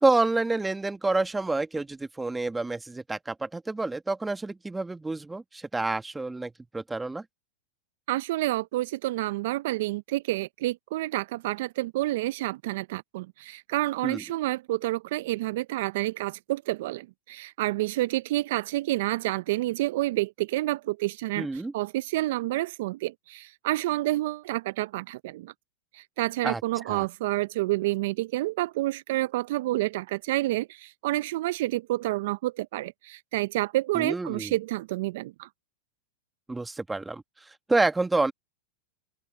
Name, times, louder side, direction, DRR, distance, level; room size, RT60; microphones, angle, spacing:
voice 1, 0.0-7.2 14.0-14.2 21.4-21.7 26.4-26.6 26.9-27.1 33.9-34.5 36.5-38.3, right 3 dB, 10° right, 1.7 m, -28 dB
voice 2, 8.1-25.5 25.9-35.5, right 17 dB, 65° right, 0.5 m, -29 dB
open air
hypercardioid pair, 110°, 0 cm